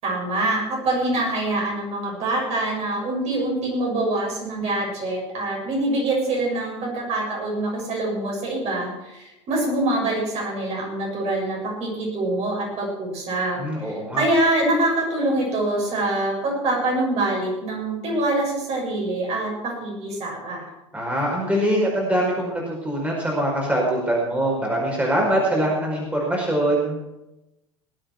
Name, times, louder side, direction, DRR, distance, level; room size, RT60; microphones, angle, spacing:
voice 1, 0.0-20.7, right 2 dB, 40° right, -2 dB, 7.0 m, -25 dB
voice 2, 13.6-14.2 20.9-27.0, right 1 dB, 10° right, -2 dB, 5.2 m, -23 dB
19.5 x 8.9 x 6.0 m, 0.93 s
figure-of-eight pair, 75°, 16 cm